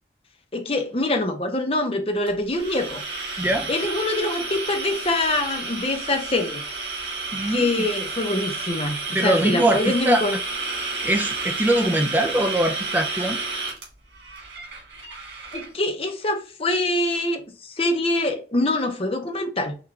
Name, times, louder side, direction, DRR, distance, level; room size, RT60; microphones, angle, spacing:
voice 1, 0.5-3.0 3.7-6.6 7.5-10.4 15.5-19.8, left 2 dB, 35° left, 0.8 m, -24 dB
sound 1, 2.3-15.7, right 3 dB, 90° right, 2.3 m, -31 dB
voice 2, 3.4-3.7 7.3-7.9 9.1-10.2 11.0-13.4, right 1 dB, 10° right, 0.5 m, -22 dB
5.9 x 2.5 x 3.2 m
head